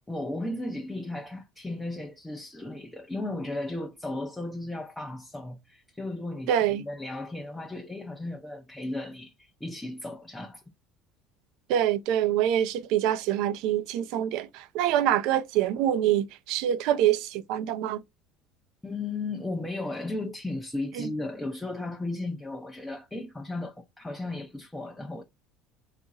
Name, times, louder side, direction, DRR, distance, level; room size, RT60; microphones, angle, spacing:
voice 1, 0.1-10.6 18.8-25.2, left 2 dB, 5° left, 0.5 m, -35 dB
voice 2, 6.5-6.8 11.7-18.0 21.0-21.1, right 11 dB, 70° right, 0.5 m, -25 dB
3.7 x 2.5 x 3.9 m
cardioid pair, 130°, 0 cm